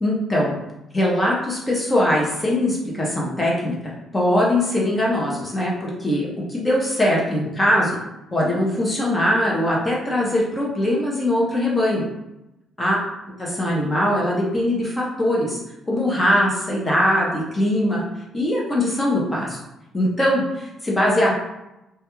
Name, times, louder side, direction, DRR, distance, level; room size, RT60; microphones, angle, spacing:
voice 1, 0.0-0.5 0.9-8.0 8.3-12.0 12.8-13.0 13.4-15.6 15.9-18.0 18.3-19.6 19.9-21.3, left 1 dB, 15° left, -4 dB, 0.6 m, -21 dB
2.2 x 2.2 x 3.0 m, 0.92 s
cardioid pair, 155°, 0 cm